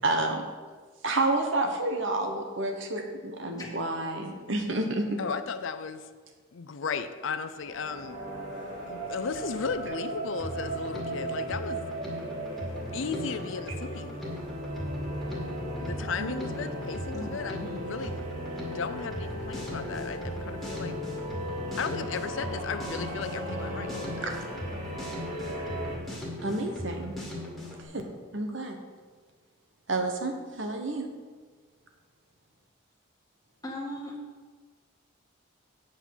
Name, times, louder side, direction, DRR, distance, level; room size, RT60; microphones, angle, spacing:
voice 1, 0.0-0.4 1.0-5.2 16.2-16.3 24.2-24.3 26.4-27.1 27.9-28.1 28.3-28.8 29.9-31.1, right 2 dB, 65° right, 4 dB, 1.2 m, -29 dB
voice 2, 5.2-6.1 6.5-8.2 8.9-11.8 12.9-14.3 15.8-18.2 18.7-21.0 21.8-24.3, left 5 dB, 70° left, 11 dB, 0.5 m, -35 dB
sound 1, 7.5-26.0, equal, 40° right, 3.1 m, -37 dB
Drum kit, 10.4-27.8, equal, ahead, 2.1 m, -39 dB
voice 3, 17.1-17.9 33.6-34.1, left 1 dB, 20° left, -3 dB, 1.7 m, -39 dB
8.4 x 5.5 x 7.2 m, 1.4 s
head